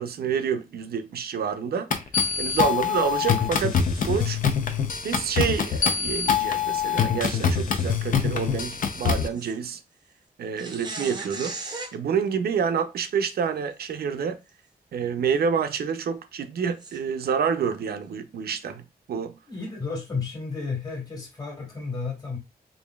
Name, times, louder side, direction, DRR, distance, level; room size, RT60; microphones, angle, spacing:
voice 1, 0.0-1.9 2.4-4.4 5.0-9.8 10.4-11.6 11.9-14.4 14.9-19.4, right 7 dB, 75° right, 0.5 m, -28 dB
sound 1, 1.9-9.3, left 7 dB, 55° left, 0.6 m, -24 dB
sound 2, 9.3-9.6 10.6-12.0 13.8-13.9 14.5-14.6 16.8-17.0, right 3 dB, 25° right, 0.6 m, -36 dB
voice 2, 19.5-22.4, left 4 dB, 25° left, 1.6 m, -32 dB
5.0 x 2.6 x 2.3 m
wide cardioid pair, 175°, 16 cm